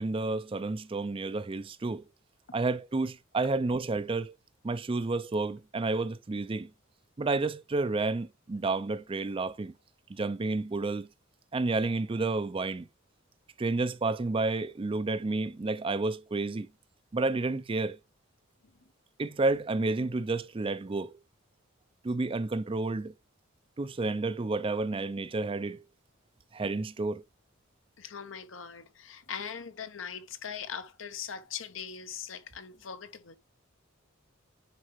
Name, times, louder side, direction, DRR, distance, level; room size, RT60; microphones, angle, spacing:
voice 1, 0.0-2.0 2.5-4.4 4.6-6.7 7.2-9.7 10.1-11.1 11.5-12.9 13.6-16.7 17.1-18.0 19.2-21.1 22.0-23.1 23.8-25.8 26.5-27.2, right 3 dB, 25° right, 0.4 m, -30 dB
voice 2, 28.0-33.4, left 7 dB, 65° left, 0.9 m, -41 dB
9.8 x 4.4 x 3.0 m
head